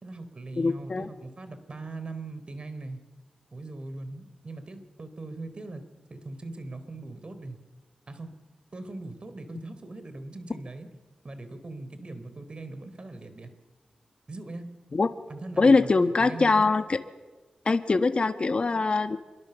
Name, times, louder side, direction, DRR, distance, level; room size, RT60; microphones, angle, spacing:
voice 1, 0.0-3.0 3.5-5.8 6.1-7.6 8.1-8.3 8.7-10.9 11.2-13.5 14.3-14.7 15.3-16.7, right 2 dB, 45° right, 10 dB, 3.8 m, -40 dB
voice 2, 0.6-1.1 14.9-15.1 15.6-17.0 17.6-19.2, left 3 dB, 50° left, 7 dB, 1.5 m, -22 dB
27.0 x 23.5 x 7.1 m, 1.2 s
cardioid pair, 60°, 2 cm